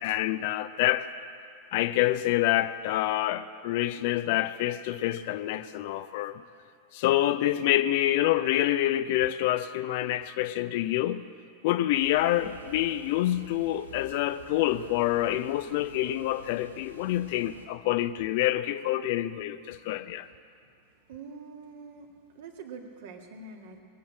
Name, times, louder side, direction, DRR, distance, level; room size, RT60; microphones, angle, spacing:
voice 1, 0.0-1.1 1.7-6.4 6.9-11.2 11.6-20.3, left 14 dB, 50° left, 0.5 m, -27 dB
sound 1, 11.9-17.7, left 1 dB, 90° right, 1.4 m, -50 dB
voice 2, 21.1-22.1 22.3-23.8, right 4 dB, 55° right, 1.9 m, -44 dB
21.0 x 7.9 x 8.7 m
figure-of-eight pair, 90°, 0 cm